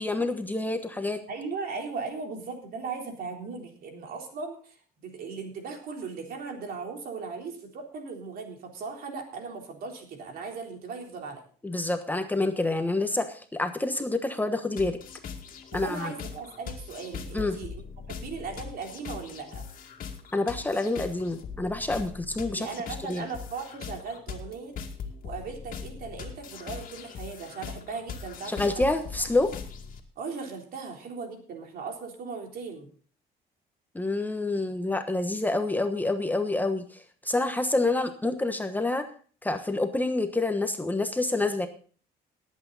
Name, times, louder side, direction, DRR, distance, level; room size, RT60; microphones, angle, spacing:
voice 1, 0.0-1.2 11.6-15.0 15.7-16.1 17.3-17.6 20.3-22.7 23.1-23.3 28.5-29.5 33.9-39.0 39.4-41.7, left 2 dB, 10° left, 7 dB, 1.2 m, -27 dB
voice 2, 1.3-4.8 5.0-11.4 15.7-17.8 18.1-19.6 22.6-24.7 25.2-28.9 30.2-32.9, right 4 dB, 60° right, 2 dB, 3.7 m, -38 dB
sound 1, 14.8-30.0, left 6 dB, 55° left, 2.2 m, -41 dB
18.5 x 8.4 x 4.1 m, 0.43 s
cardioid pair, 110°, 17 cm